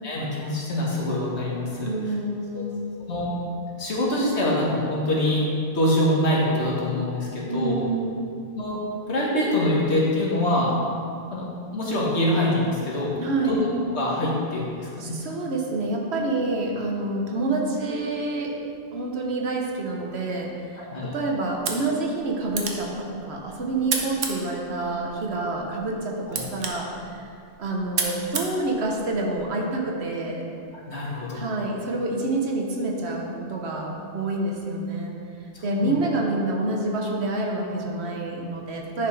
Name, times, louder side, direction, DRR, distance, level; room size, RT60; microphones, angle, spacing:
voice 1, 0.0-1.9 2.5-2.6 3.1-3.3 3.8-5.5 5.7-7.8 8.5-8.8 9.1-10.7 11.3-11.5 11.7-13.1 13.5-15.2 20.8-21.1 26.3-26.4 30.9-31.4 35.5-35.9, left 1 dB, 65° left, -4 dB, 1.8 m, -24 dB
voice 2, 1.8-2.8 7.5-8.3 13.2-13.6 15.0-18.6 18.9-27.3 27.6-30.5 31.3-39.1, right 2 dB, 60° right, 0 dB, 1.2 m, -28 dB
sound 1, 21.5-29.5, right 5 dB, 85° right, 1.2 m, -34 dB
10.0 x 5.6 x 3.4 m, 2.4 s
omnidirectional pair, 1.2 m